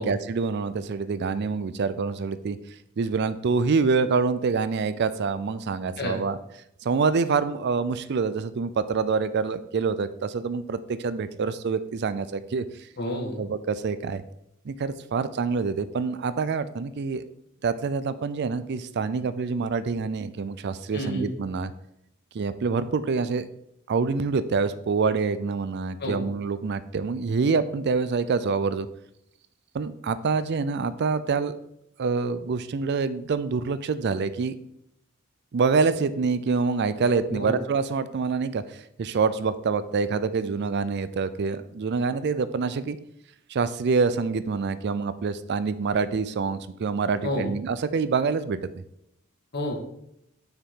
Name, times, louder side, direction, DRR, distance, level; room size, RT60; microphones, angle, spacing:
voice 1, 0.0-2.6 3.0-6.4 6.8-12.6 13.4-14.2 14.7-17.2 17.6-21.7 22.3-23.5 23.9-28.9 29.7-31.6 32.0-34.5 35.5-43.0 43.5-48.6, right 4 dB, 55° right, 14 dB, 0.4 m, -26 dB
voice 2, 13.0-13.4 20.9-21.3 26.0-26.2 37.3-37.6 47.2-47.5 49.5-49.8, left 1 dB, 55° left, 1 dB, 1.6 m, -29 dB
6.8 x 5.9 x 3.7 m, 0.77 s
head